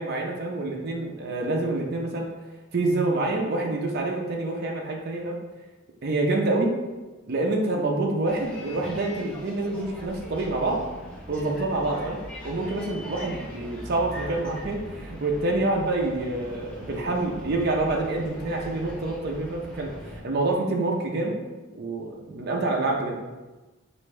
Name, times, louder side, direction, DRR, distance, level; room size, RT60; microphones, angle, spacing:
voice 1, 0.0-2.3 2.7-5.4 6.0-6.8 7.3-10.8 11.3-12.2 12.4-19.9 20.2-21.4 21.7-23.2, right 2 dB, 50° right, 0 dB, 0.6 m, -27 dB
Bus, 8.3-20.2, equal, 5° left, 0.7 m, -40 dB
5.3 x 2.5 x 3.2 m, 1.2 s
head